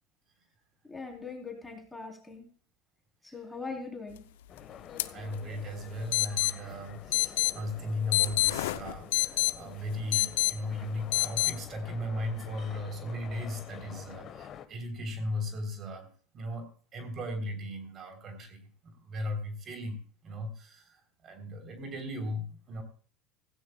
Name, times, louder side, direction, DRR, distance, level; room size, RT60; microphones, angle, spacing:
voice 1, 0.9-2.5 3.3-4.2, left 4 dB, 10° left, 2 dB, 3.7 m, -41 dB
sound 1, 4.5-14.7, left 9 dB, 45° left, 1.3 m, -48 dB
sound 2, 5.0-5.1 5.3-5.4 6.1-6.5 7.1-7.5 8.1-9.5 10.1-10.5 11.1-11.5, left 17 dB, 75° left, 0.6 m, -26 dB
voice 2, 5.1-16.1 16.3-18.7 19.0-20.0 20.2-21.0 21.2-22.8, left 1 dB, 40° right, 6 dB, 3.5 m, -37 dB
16.0 x 15.5 x 2.3 m, 0.43 s
hypercardioid pair, 85°, 0 cm